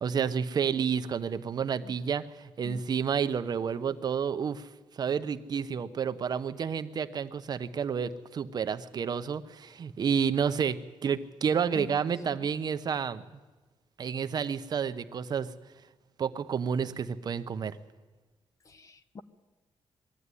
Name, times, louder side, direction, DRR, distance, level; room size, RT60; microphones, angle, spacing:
voice 1, 0.0-4.7 4.9-13.2 14.0-15.5 16.2-17.8, right 7 dB, 45° right, 10 dB, 0.8 m, -30 dB
voice 2, 18.7-19.2, left 3 dB, 35° left, 12 dB, 0.9 m, -44 dB
21.5 x 14.0 x 9.8 m, 1.2 s
wide cardioid pair, 155°, 10 cm